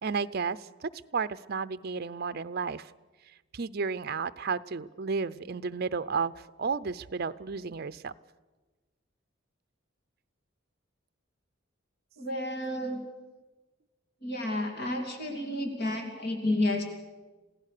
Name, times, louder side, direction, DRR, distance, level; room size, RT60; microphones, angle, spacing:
voice 1, 0.0-2.9 3.5-6.3 6.6-8.1, right 5 dB, 50° right, 14 dB, 0.6 m, -32 dB
voice 2, 12.2-13.0 14.2-16.8, left 1 dB, 50° left, 4 dB, 2.9 m, -31 dB
28.0 x 16.5 x 6.7 m, 1.3 s
head